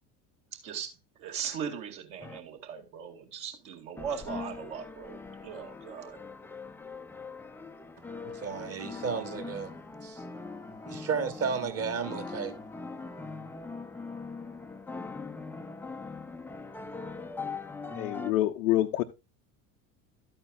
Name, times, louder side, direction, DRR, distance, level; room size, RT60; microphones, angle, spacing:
voice 1, 0.5-6.2, right 7 dB, 60° right, 2.3 m, -39 dB
sound 1, 2.2-2.4 4.0-18.3, left 4 dB, 5° left, 0.4 m, -41 dB
voice 2, 8.2-9.7 10.0-10.2 10.9-12.6, right 6 dB, 30° right, 1.4 m, -33 dB
voice 3, 18.0-19.0, left 14 dB, 65° left, 0.7 m, -26 dB
12.0 x 8.7 x 2.4 m
figure-of-eight pair, 70°, 47 cm